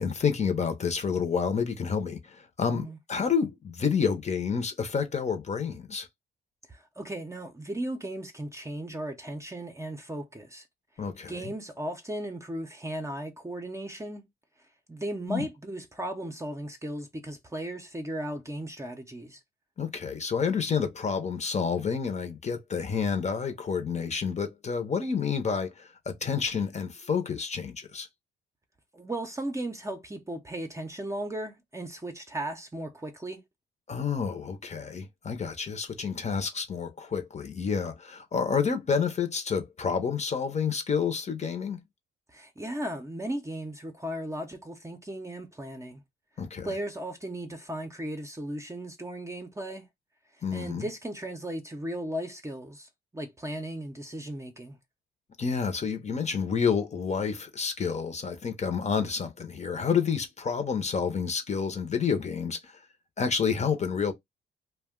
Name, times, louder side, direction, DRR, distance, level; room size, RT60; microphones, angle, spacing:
voice 1, 0.0-6.1 11.0-11.5 15.3-15.5 19.8-28.1 33.9-41.8 46.4-46.7 50.4-50.9 55.4-62.7 63.2-64.1, left 6 dB, 35° left, 0.8 m, -29 dB
voice 2, 6.7-10.7 11.3-14.3 14.9-19.4 28.9-33.4 42.3-46.0 46.6-49.9 50.5-54.8, right 1 dB, 15° right, 0.7 m, -36 dB
2.4 x 2.2 x 3.6 m
cardioid pair, 90°, 20 cm